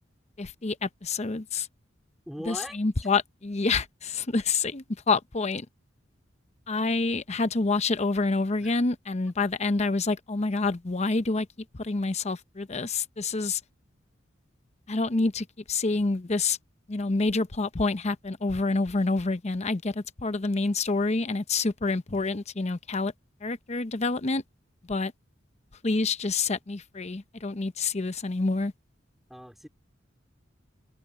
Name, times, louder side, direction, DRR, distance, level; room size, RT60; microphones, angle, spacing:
voice 1, 0.4-1.7 2.5-5.7 6.7-11.5 11.7-13.6 14.9-16.6 16.9-23.1 23.4-24.4 24.9-25.1 25.8-28.7, left 3 dB, 35° left, 0.8 m, -27 dB
voice 2, 2.3-2.8 8.6-8.8 29.3-29.7, equal, ahead, 2.7 m, -39 dB
head